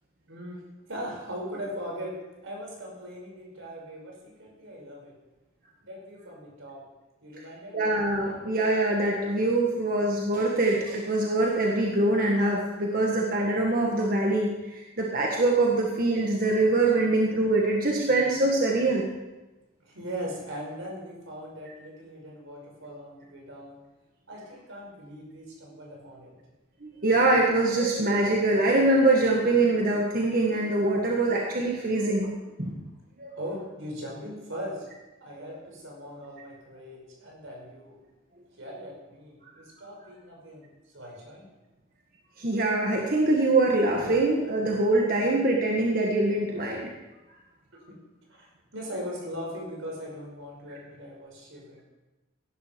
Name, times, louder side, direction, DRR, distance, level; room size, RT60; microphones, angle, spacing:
voice 1, 0.3-0.6 0.9-5.1 5.8-6.8 7.2-7.8 19.8-23.8 24.3-26.3 33.3-34.9 35.2-38.0 38.6-41.5 48.3-51.8, equal, 90° right, -1 dB, 5.5 m, -40 dB
voice 2, 7.7-19.1 26.8-32.3 32.6-32.8 33.2-33.4 42.4-46.9, right 2 dB, 45° right, -1 dB, 1.6 m, -24 dB
17.0 x 11.0 x 4.6 m, 1.1 s
head